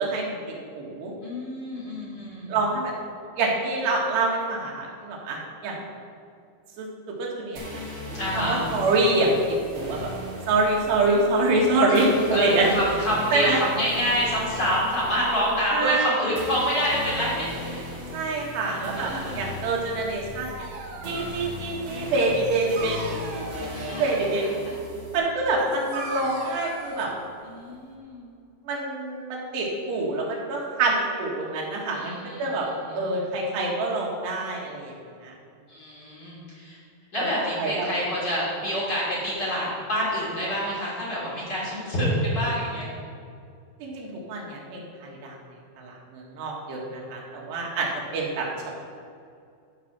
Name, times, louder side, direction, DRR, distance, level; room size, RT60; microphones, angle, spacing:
voice 1, 0.0-1.1 2.5-2.9 3.4-5.8 6.8-7.8 8.4-9.4 9.7-10.0 10.5-12.7 13.3-13.6 15.7-16.1 18.1-20.7 21.0-24.6 25.1-27.1 28.7-34.9 35.2-35.3 37.2-37.9 43.8-45.3 45.8-48.5, right 2 dB, 85° right, -3 dB, 3.9 m, -26 dB
voice 2, 1.2-2.5 8.2-8.6 11.9-17.8 18.6-19.5 23.7-24.2 24.6-24.8 27.4-28.3 31.9-33.0 35.7-36.8 37.1-42.9, equal, 30° left, -7 dB, 3.4 m, -27 dB
sound 1, 7.6-25.2, left 1 dB, 45° right, 3.9 m, -38 dB
Dog, 20.1-27.9, right 3 dB, 60° right, 2.4 m, -40 dB
14.0 x 5.6 x 6.1 m, 2.4 s
omnidirectional pair, 4.7 m